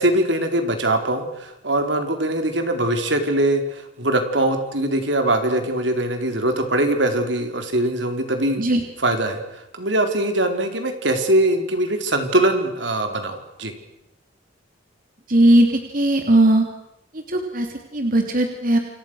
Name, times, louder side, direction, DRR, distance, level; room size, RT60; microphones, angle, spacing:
voice 1, 0.0-8.6 9.0-9.4 9.8-13.7, right 1 dB, 70° right, 6 dB, 4.4 m, -22 dB
voice 2, 15.3-16.7 17.1-18.8, right 1 dB, 45° right, 4 dB, 3.2 m, -18 dB
29.5 x 28.5 x 6.5 m, 0.86 s
head